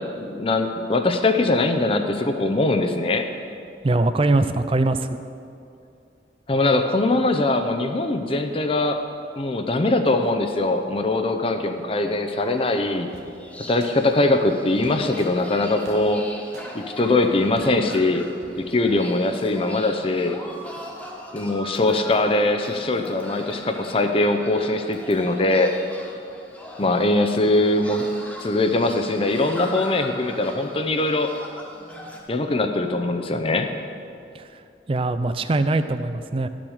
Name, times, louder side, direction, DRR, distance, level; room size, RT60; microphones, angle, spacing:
voice 1, 0.0-3.3 6.5-9.0 9.4-13.1 13.7-16.2 16.7-18.2 18.6-20.4 21.3-25.7 26.8-28.0 28.4-31.3 32.3-33.7, left 2 dB, 30° left, 6 dB, 0.6 m, -22 dB
voice 2, 3.8-5.2 34.3-34.6 34.9-36.5, right 2 dB, 30° right, 11 dB, 0.4 m, -22 dB
sound 1, 12.4-32.2, equal, 10° left, 1.3 m, -41 dB
sound 2, 13.1-13.2 13.8-13.9 14.8-15.3 15.9-16.0 16.5-16.7 17.2-17.3 17.6-18.0 18.4-18.5, right 3 dB, 60° right, 1.0 m, -44 dB
12.0 x 6.1 x 6.4 m, 2.5 s
head